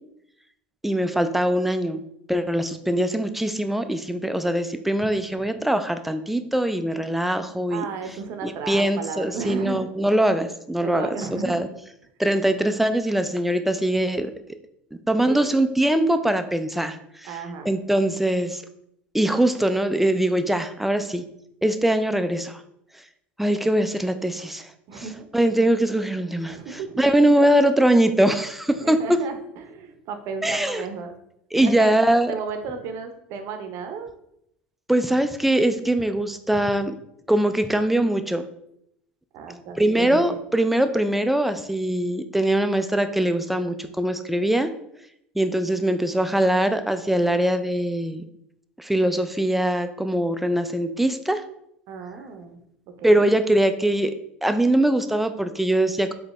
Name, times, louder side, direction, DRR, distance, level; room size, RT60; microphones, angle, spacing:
voice 1, 0.8-2.0 2.3-7.9 8.4-11.7 12.2-14.6 15.1-17.4 17.7-18.6 19.1-21.2 21.6-22.6 23.4-24.7 25.0-25.1 25.3-26.6 27.0-29.2 30.4-30.8 31.5-32.3 34.9-36.9 37.3-38.5 39.8-44.7 45.4-48.2 48.8-51.4 53.0-54.1 54.4-56.1, right 1 dB, 5° right, 9 dB, 0.3 m, -22 dB
voice 2, 7.7-9.8 10.8-11.6 15.3-15.5 17.2-17.7 24.9-25.3 26.4-27.0 28.8-31.1 31.6-31.9 32.3-34.1 39.3-40.3 51.9-52.6 53.0-53.3, right 5 dB, 60° right, 7 dB, 0.6 m, -34 dB
4.0 x 2.7 x 3.1 m, 0.76 s
hypercardioid pair, 80°, 6 cm